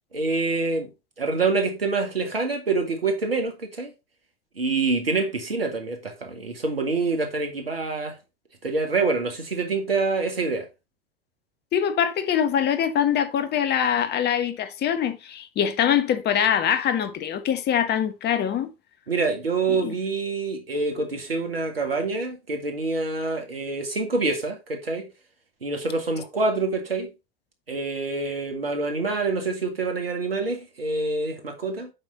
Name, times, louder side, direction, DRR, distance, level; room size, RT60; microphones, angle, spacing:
voice 1, 0.1-0.9 1.2-3.9 4.6-8.2 8.6-10.7 19.1-25.1 25.6-27.1 27.7-31.9, right 3 dB, 85° right, 2.0 m, -26 dB
voice 2, 11.7-18.7 19.8-19.9, left 9 dB, 35° left, 1.3 m, -23 dB
8.0 x 5.5 x 4.0 m
figure-of-eight pair, 80°, 29 cm